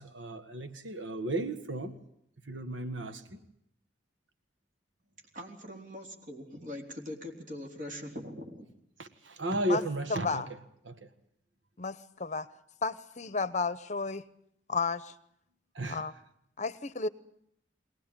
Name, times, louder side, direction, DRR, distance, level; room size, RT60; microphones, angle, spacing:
voice 1, 0.0-2.0 2.5-3.4 9.0-10.4 10.9-11.1 15.8-16.0, right 1 dB, 90° right, 1.7 m, -34 dB
voice 2, 5.3-8.7, left 1 dB, 45° right, 4.0 m, -42 dB
voice 3, 10.1-10.5 11.8-12.5 12.8-14.2 14.7-15.1 15.8-16.1 16.6-17.1, left 4 dB, 40° left, 0.9 m, -32 dB
22.0 x 19.0 x 8.9 m
head